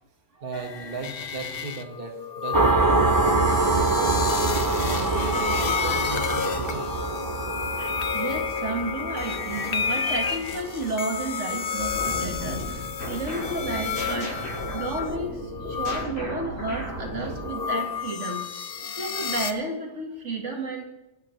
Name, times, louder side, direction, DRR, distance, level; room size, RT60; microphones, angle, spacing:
voice 1, 0.4-4.4 5.0-6.9, right 3 dB, 45° right, 3 dB, 1.8 m, -36 dB
sound 1, 0.5-16.1 16.9-19.5, left 7 dB, 50° left, 0.9 m, -31 dB
sound 2, 2.5-11.8, right 3 dB, 30° right, 0.4 m, -25 dB
voice 2, 7.8-14.3 14.7-18.7 19.0-20.8, right 2 dB, 65° right, 2 dB, 2.0 m, -32 dB
sound 3, 11.8-18.0, equal, 80° left, 6.4 m, -35 dB
23.5 x 11.5 x 3.2 m, 0.93 s
omnidirectional pair, 1.3 m